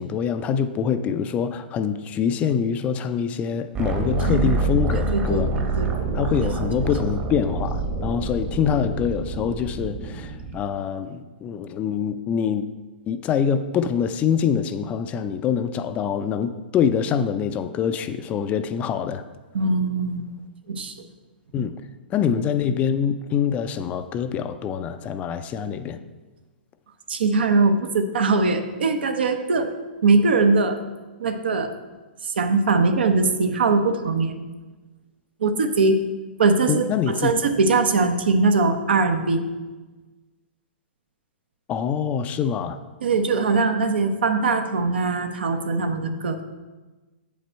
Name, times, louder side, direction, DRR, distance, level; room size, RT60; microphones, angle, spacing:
voice 1, 0.0-5.5 6.1-12.7 13.1-19.2 21.5-21.7 22.1-26.0 36.7-37.3 41.7-42.8, left 7 dB, 25° left, 11 dB, 0.4 m, -25 dB
sound 1, 3.7-10.6, right 3 dB, 25° right, 1.0 m, -26 dB
voice 2, 5.0-5.5 5.8-6.0 19.5-20.3 20.7-20.9 27.1-29.7 30.0-30.8 31.2-31.7 32.2-34.4 35.4-36.0 36.4-39.4 43.0-46.4, right 3 dB, 75° right, 8 dB, 0.8 m, -21 dB
7.8 x 5.2 x 4.5 m, 1.2 s
hypercardioid pair, 125°, 6 cm